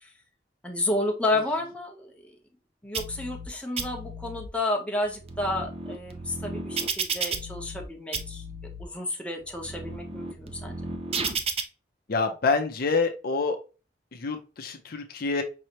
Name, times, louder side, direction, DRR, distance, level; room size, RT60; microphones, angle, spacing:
voice 1, 0.6-2.3 2.8-8.4 8.8-10.8, left 2 dB, 5° left, 0.9 m, -31 dB
sound 1, 2.9-3.5 3.8-4.5 5.1-7.9 8.1-8.8 9.4-11.6, right 4 dB, 35° right, 0.6 m, -33 dB
voice 2, 12.1-13.6 14.1-15.4, left 4 dB, 55° left, 0.6 m, -27 dB
5.3 x 3.1 x 2.9 m
head